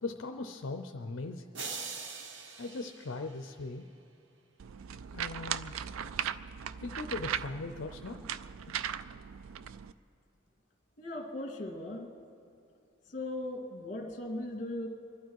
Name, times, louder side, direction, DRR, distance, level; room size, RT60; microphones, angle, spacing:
voice 1, 0.0-1.5 2.6-3.9 5.1-5.7 6.8-8.3 8.7-8.8, left 3 dB, 65° left, 5 dB, 0.6 m, -39 dB
sound 1, 1.5-3.9, right 5 dB, 65° right, 0.9 m, -43 dB
sound 2, 4.6-9.9, right 8 dB, 85° right, 0.4 m, -38 dB
voice 2, 11.0-12.1 13.1-14.9, left 1 dB, 40° left, 2 dB, 1.9 m, -38 dB
25.0 x 11.5 x 4.7 m, 2.6 s
head